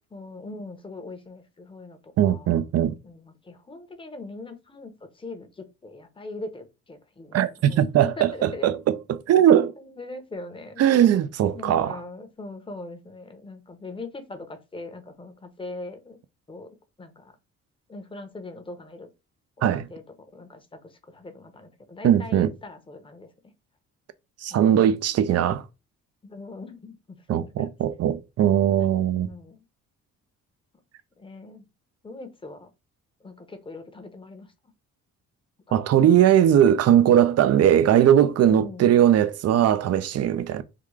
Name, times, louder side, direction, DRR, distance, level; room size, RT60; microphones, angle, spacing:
voice 1, 0.1-2.6 3.0-7.4 7.7-8.7 9.8-10.8 11.5-16.2 16.5-16.7 17.0-17.4 17.9-19.1 19.6-20.0 20.3-23.5 24.5-24.8 26.2-27.7 29.1-29.6 31.2-31.7 32.0-32.7 33.2-34.5 35.7-35.8 38.5-38.9, left 2 dB, 15° left, 0.8 m, -41 dB
voice 2, 2.2-2.9 7.3-9.7 10.8-12.0 19.6-19.9 22.0-22.5 24.4-25.6 27.3-29.3 35.7-40.6, right 10 dB, 55° right, 0.5 m, -19 dB
3.6 x 2.3 x 3.2 m
cardioid pair, 90°, 30 cm